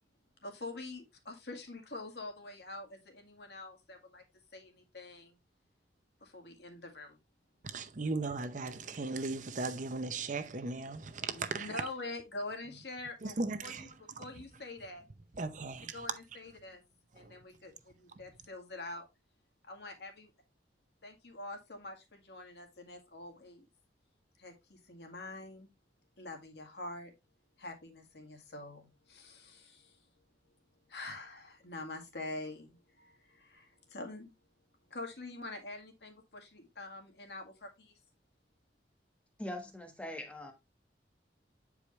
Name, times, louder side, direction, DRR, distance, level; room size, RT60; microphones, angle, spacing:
voice 1, 0.4-4.2 4.5-5.4 6.2-7.2 11.3-13.4 13.6-15.0 15.9-16.8 17.1-19.1 19.6-20.3 21.0-23.7 24.4-25.7 26.2-27.1 27.6-30.0 30.9-34.3 34.9-37.9, left 2 dB, 70° left, 1.9 m, -45 dB
voice 2, 7.6-11.8 13.2-14.2 15.3-16.1 17.2-17.4, right 3 dB, 45° right, 0.7 m, -37 dB
voice 3, 39.4-40.5, left 1 dB, 5° left, 1.3 m, -42 dB
8.3 x 4.9 x 3.2 m
head